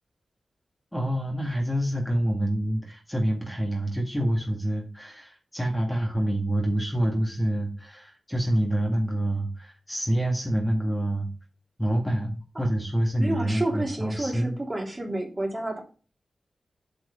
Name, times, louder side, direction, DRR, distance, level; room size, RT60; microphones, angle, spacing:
voice 1, 0.9-11.3 11.8-14.6, right 1 dB, 5° left, 0 dB, 1.8 m, -27 dB
voice 2, 13.2-15.8, right 1 dB, 25° right, 1 dB, 2.7 m, -30 dB
8.4 x 4.8 x 5.1 m, 0.35 s
wide cardioid pair, 95°, 0 cm